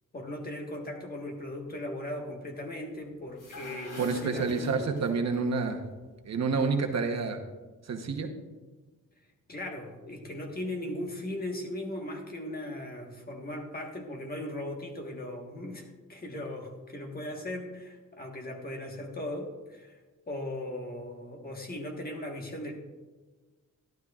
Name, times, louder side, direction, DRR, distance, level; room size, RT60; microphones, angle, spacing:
voice 1, 0.1-4.7 9.5-20.0 20.3-22.7, left 1 dB, 30° left, 1 dB, 1.4 m, -38 dB
sound 1, 3.2-5.4, right 3 dB, 75° left, 3.2 m, -42 dB
voice 2, 4.0-5.8 6.2-7.4 7.8-8.3, right 4 dB, 55° right, 4 dB, 1.0 m, -29 dB
12.0 x 12.0 x 2.4 m, 1.3 s
wide cardioid pair, 155°, 32 cm